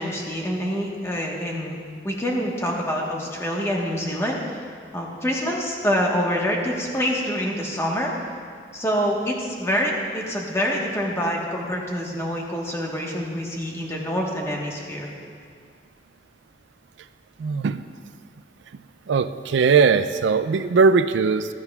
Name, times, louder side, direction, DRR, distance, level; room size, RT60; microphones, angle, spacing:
voice 1, 0.0-1.8 2.0-4.7 4.9-8.1 8.7-15.1, equal, 15° left, -1 dB, 1.2 m, -26 dB
voice 2, 17.4-17.8 19.1-21.5, right 5 dB, 80° right, 11 dB, 0.4 m, -19 dB
15.5 x 12.0 x 2.4 m, 2.2 s
head